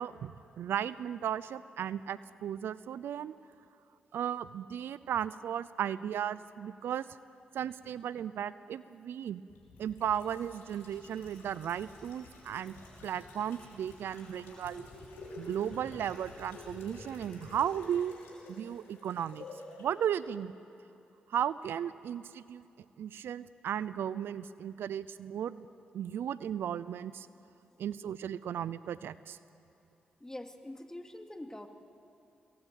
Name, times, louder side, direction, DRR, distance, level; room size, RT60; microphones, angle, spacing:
voice 1, 0.0-3.3 4.1-7.1 7.5-9.4 9.8-12.8 13.0-14.9 15.4-18.1 18.5-19.5 19.8-20.5 21.3-22.6 23.0-25.7 25.9-27.3 27.8-29.4, right 9 dB, 80° right, 17 dB, 0.6 m, -35 dB
sound 1, 9.5-19.9 20.1-20.2, left 2 dB, 85° left, 5.7 m, -50 dB
voice 2, 30.2-31.7, left 1 dB, 15° left, 5 dB, 2.5 m, -44 dB
25.0 x 20.5 x 9.1 m, 2.8 s
supercardioid pair, 50°, 4 cm